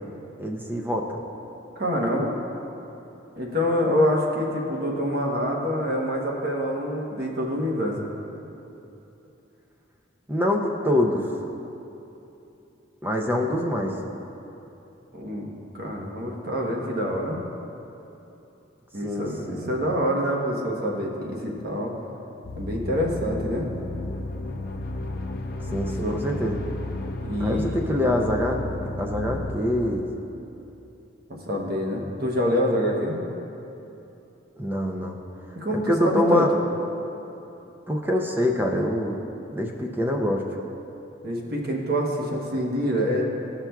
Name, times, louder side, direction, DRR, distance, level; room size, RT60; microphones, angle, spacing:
voice 1, 0.4-1.1 10.3-11.2 13.0-13.9 19.0-19.7 25.7-26.6 27.4-28.6 29.0-30.0 34.6-35.2 35.9-36.5 37.9-39.2 39.5-40.4, left 1 dB, 10° right, 1 dB, 0.5 m, -25 dB
voice 2, 1.8-2.3 3.4-8.1 15.1-17.4 18.9-21.9 22.6-23.7 26.0-26.2 27.2-27.9 31.3-33.2 35.6-36.5 41.2-43.2, equal, 50° right, -1 dB, 1.0 m, -26 dB
sound 1, 22.4-29.6, left 2 dB, 50° left, 0.5 m, -33 dB
14.0 x 5.9 x 2.3 m, 2.9 s
head